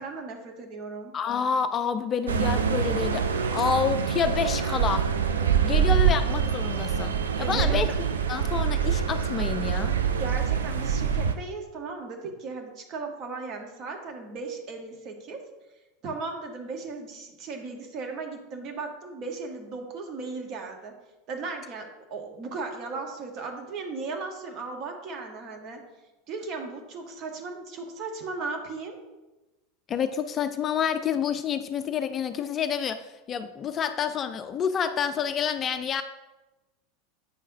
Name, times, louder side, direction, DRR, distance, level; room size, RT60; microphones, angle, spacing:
voice 1, 0.0-1.1 7.4-7.9 10.1-15.4 16.0-20.9 21.3-25.8 26.3-29.0, right 4 dB, 40° right, 3 dB, 1.2 m, -36 dB
voice 2, 1.1-3.3 3.5-5.1 5.6-7.9 8.3-9.9 29.9-36.0, left 7 dB, 30° left, 10 dB, 0.3 m, -28 dB
sound 1, 2.3-11.3, right 7 dB, 70° right, 0.4 m, -25 dB
8.3 x 5.4 x 2.6 m, 1.1 s
figure-of-eight pair, 80°, 0 cm